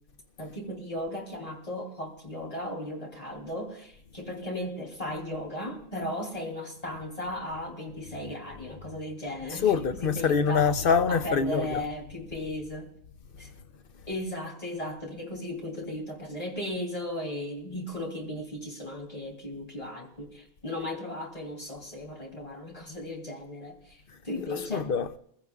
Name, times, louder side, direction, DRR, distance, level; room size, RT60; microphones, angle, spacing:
voice 1, 0.4-10.7 11.1-12.9 13.4-13.5 14.1-24.9, left 1 dB, 35° left, 3.3 m, -36 dB
voice 2, 9.5-11.8 24.4-25.2, left 6 dB, 60° left, 0.9 m, -25 dB
23.5 x 16.0 x 2.4 m
omnidirectional pair, 1.1 m